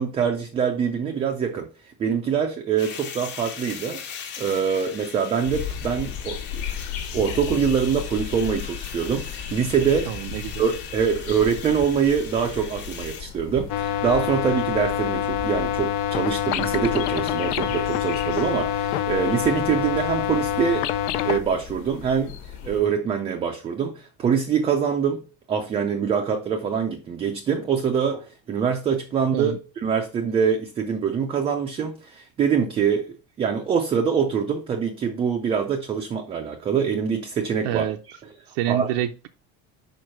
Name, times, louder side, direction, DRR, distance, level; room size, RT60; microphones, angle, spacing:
voice 1, 0.0-6.6 7.1-10.1 10.6-20.9 21.2-25.2 25.5-38.2 38.7-38.9, right 7 dB, 20° right, 0.5 m, -24 dB
sound 1, 2.8-13.2, left 7 dB, 35° left, 1.1 m, -39 dB
sound 2, 5.4-22.8, left 8 dB, 85° left, 1.6 m, -36 dB
voice 2, 10.1-10.6 29.3-29.6 37.6-38.0 38.5-39.3, right 12 dB, 65° right, 0.6 m, -27 dB
sound 3, 13.7-21.4, left 10 dB, 60° left, 0.6 m, -26 dB
5.1 x 4.7 x 6.1 m
cardioid pair, 175°, 32 cm